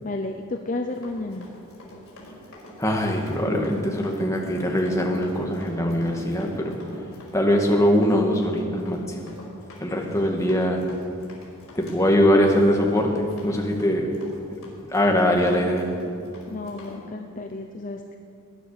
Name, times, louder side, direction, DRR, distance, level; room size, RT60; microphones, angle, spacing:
voice 1, 0.0-1.5 16.5-18.2, left 2 dB, 40° left, 4 dB, 0.7 m, -32 dB
Run, 0.9-17.0, equal, 85° left, 5.4 m, -42 dB
voice 2, 2.8-6.8 7.3-9.3 9.8-10.8 11.8-14.1 14.9-15.9, equal, 15° left, 1 dB, 1.9 m, -22 dB
19.5 x 10.5 x 6.8 m, 2.3 s
head